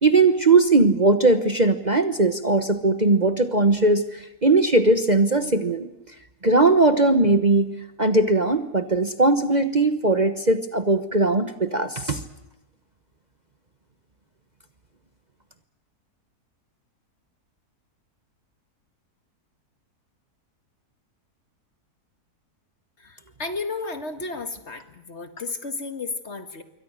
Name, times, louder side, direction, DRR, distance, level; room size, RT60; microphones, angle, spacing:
voice 1, 0.0-5.9 6.4-7.7 8.0-12.2, right 2 dB, 30° right, 9 dB, 1.2 m, -19 dB
voice 2, 23.0-26.6, left 3 dB, 45° left, 9 dB, 2.0 m, -33 dB
27.0 x 23.5 x 6.5 m, 0.94 s
omnidirectional pair, 1.6 m